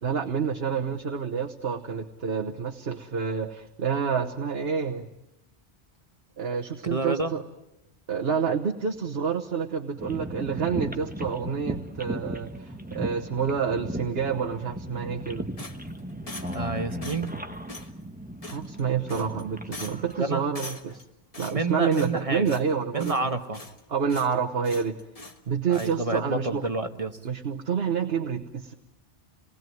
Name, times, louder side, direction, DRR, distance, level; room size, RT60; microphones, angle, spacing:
voice 1, 0.0-5.1 6.4-7.4 8.1-15.5 18.5-21.0 21.4-23.4 23.9-25.0 25.5-26.7 27.2-28.7, right 6 dB, 65° right, 4 dB, 1.4 m, -28 dB
voice 2, 6.8-7.3 16.4-17.3 20.2-20.4 21.5-22.6 22.9-23.6 25.7-27.2, right 2 dB, 30° right, 7 dB, 1.5 m, -29 dB
sound 1, 10.0-20.2, right 1 dB, 10° right, 1.3 m, -36 dB
sound 2, 15.6-16.7 17.0-17.4 17.7-17.9 18.4-18.8 19.1-19.4 19.7-20.1 20.5-21.0 21.3-22.2 22.4-22.7 23.0-23.8 24.1-24.3 24.6-25.4 25.7-26.0, left 2 dB, 35° left, 1.5 m, -42 dB
28.5 x 20.0 x 9.3 m, 0.95 s
omnidirectional pair, 1.1 m